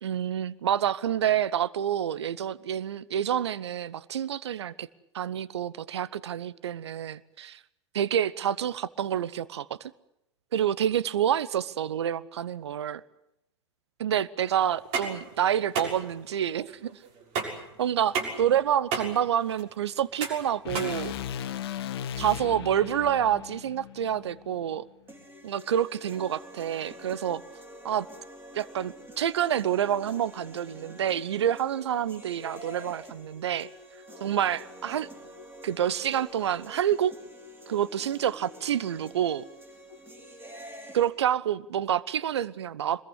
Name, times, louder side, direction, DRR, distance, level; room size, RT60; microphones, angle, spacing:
voice 1, 0.0-4.9 5.1-7.6 7.9-9.9 10.5-13.0 14.0-16.9 17.8-21.1 22.2-24.9 25.4-27.4 27.8-28.1 28.5-33.7 34.2-35.1 35.6-37.1 37.7-39.4 40.9-43.0, right 10 dB, 65° right, 19 dB, 1.0 m, -28 dB
sound 1, 14.7-21.6, right 5 dB, 40° right, 6.5 m, -34 dB
sound 2, 20.6-24.8, left 10 dB, 55° left, 1.6 m, -37 dB
sound 3, 25.1-41.1, equal, 15° right, 6.2 m, -47 dB
26.0 x 21.5 x 8.2 m, 0.83 s
figure-of-eight pair, 95°, 15 cm